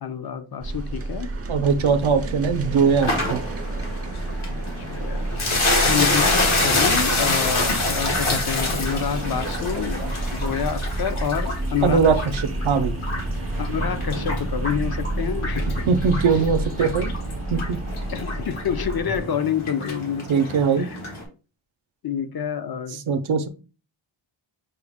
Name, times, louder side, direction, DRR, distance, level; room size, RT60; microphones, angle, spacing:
voice 1, 0.0-1.3 4.9-5.3 5.9-12.1 13.6-15.8 16.1-16.2 18.1-20.4 20.7-21.0 22.0-23.0, left 8 dB, 50° left, 0.5 m, -28 dB
sound 1, 0.6-19.2, right 2 dB, 30° right, 0.5 m, -30 dB
voice 2, 1.5-3.4 11.8-12.9 15.9-17.1 17.5-17.8 20.3-20.9 23.1-23.5, right 5 dB, 75° right, 0.6 m, -21 dB
sound 2, 3.0-21.2, left 2 dB, 85° left, 1.4 m, -27 dB
5.7 x 2.0 x 3.5 m
wide cardioid pair, 105°, 48 cm